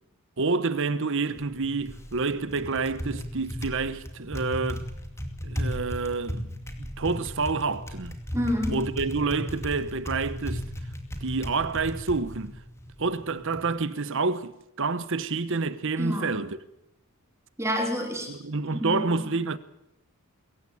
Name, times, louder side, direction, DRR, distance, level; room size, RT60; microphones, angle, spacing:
voice 1, 0.4-4.9 5.4-8.2 8.7-10.7 11.2-12.5 13.0-16.6 18.3-19.6, right 4 dB, 60° right, 1.0 m, -28 dB
Typing, 1.2-13.7, equal, 15° left, 2.4 m, -36 dB
voice 2, 8.3-8.9 16.0-16.3 17.6-18.3 18.8-19.3, equal, 15° right, 3.4 m, -29 dB
23.5 x 15.0 x 8.6 m
head